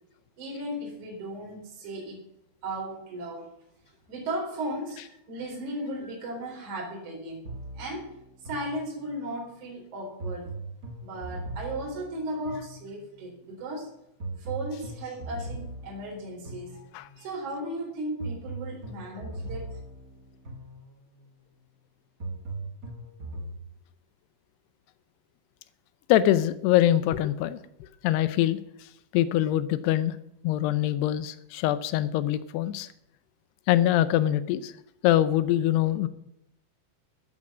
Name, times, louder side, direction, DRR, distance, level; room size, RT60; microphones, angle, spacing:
voice 1, 0.4-2.3 2.6-3.5 4.1-7.5 7.8-8.1 8.4-10.5 11.0-13.9 14.4-16.8 17.2-19.8, right 1 dB, 40° right, -2 dB, 5.2 m, -36 dB
sound 1, 7.4-9.3 10.2-13.3 14.2-17.3 18.2-21.2 22.2-23.6, right 2 dB, 85° right, 0.7 m, -39 dB
voice 2, 26.1-27.6 28.0-28.6 29.1-30.2 30.4-32.9 33.7-34.7 35.0-36.1, left 13 dB, 85° left, 14 dB, 2.4 m, -23 dB
13.0 x 12.5 x 6.1 m, 0.79 s
omnidirectional pair, 5.5 m